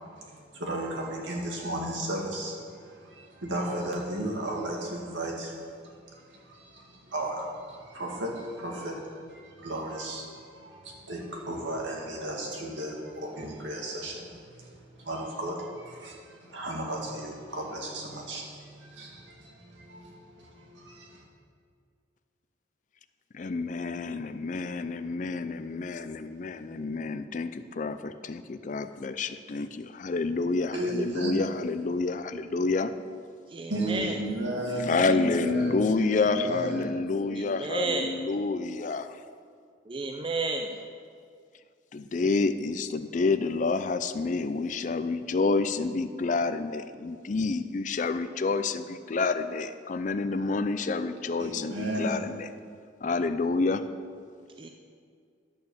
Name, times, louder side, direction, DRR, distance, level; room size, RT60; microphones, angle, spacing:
voice 1, 0.0-21.2 30.7-31.3 33.7-36.9 51.4-52.2, right 1 dB, 75° right, -1 dB, 2.1 m, -35 dB
voice 2, 23.3-32.9 34.8-39.2 41.9-52.5 53.0-53.8, left 3 dB, 40° left, 11 dB, 0.4 m, -29 dB
voice 3, 33.5-34.2 37.2-38.1 39.9-40.8 54.6-54.7, right 3 dB, 25° right, 3 dB, 0.5 m, -32 dB
11.0 x 6.9 x 7.1 m, 2.2 s
head